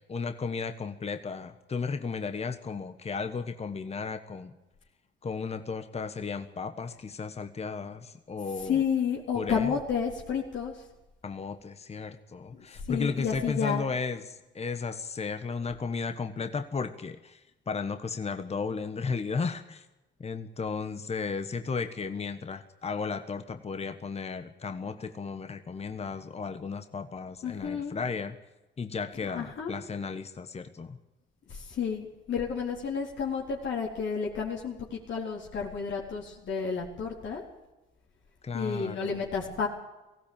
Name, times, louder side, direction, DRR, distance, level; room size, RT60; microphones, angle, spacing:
voice 1, 0.0-4.5 5.2-8.8 9.3-9.7 11.2-17.4 17.7-19.8 20.2-28.4 28.8-31.0 38.4-39.2, left 5 dB, 30° left, 9 dB, 1.3 m, -34 dB
voice 2, 8.6-10.8 12.5-13.8 27.4-28.0 29.3-29.7 31.5-37.4 38.5-39.7, left 6 dB, 70° left, -2 dB, 4.1 m, -31 dB
18.5 x 16.0 x 8.9 m, 1.0 s
cardioid pair, 90°, 20 cm